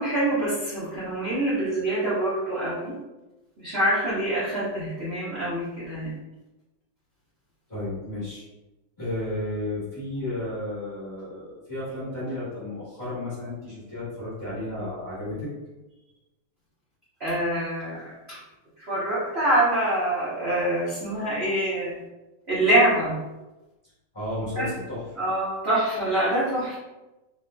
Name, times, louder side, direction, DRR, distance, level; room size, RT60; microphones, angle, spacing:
voice 1, 0.0-2.9 3.6-6.1 17.2-18.4 18.9-22.0 22.5-23.1 24.6-24.7 25.2-26.8, right 1 dB, 55° right, -10 dB, 0.7 m, -25 dB
voice 2, 7.7-8.5 9.0-15.5 24.1-25.0, left 1 dB, 25° left, -10 dB, 1.1 m, -33 dB
3.9 x 2.7 x 2.2 m, 1.1 s
omnidirectional pair, 2.3 m